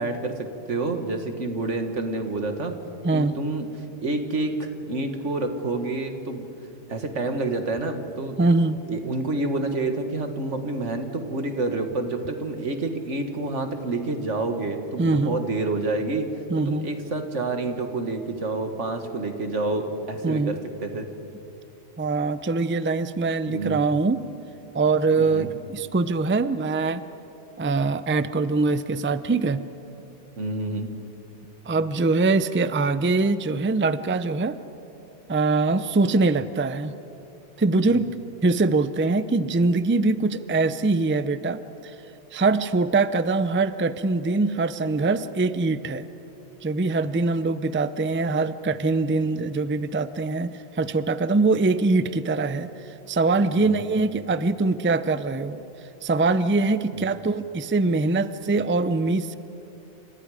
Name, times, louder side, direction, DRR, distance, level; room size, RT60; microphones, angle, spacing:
voice 1, 0.0-2.7 3.1-3.7 4.0-6.5 6.9-8.4 8.9-16.3 16.7-21.1 23.5-23.8 25.2-25.5 30.4-30.9 37.8-38.0 53.6-53.8 56.9-57.0, right 2 dB, 90° right, 6 dB, 2.1 m, -28 dB
voice 2, 8.4-8.8 15.0-15.4 16.5-16.9 20.2-20.6 22.0-24.2 24.7-27.0 27.6-29.6 31.7-34.6 35.3-36.9 37.6-38.1 38.4-41.6 42.3-46.0 46.6-52.7 53.1-55.6 56.0-59.4, right 3 dB, 15° right, 13 dB, 0.4 m, -23 dB
29.0 x 27.5 x 5.0 m, 2.9 s
omnidirectional pair, 1.2 m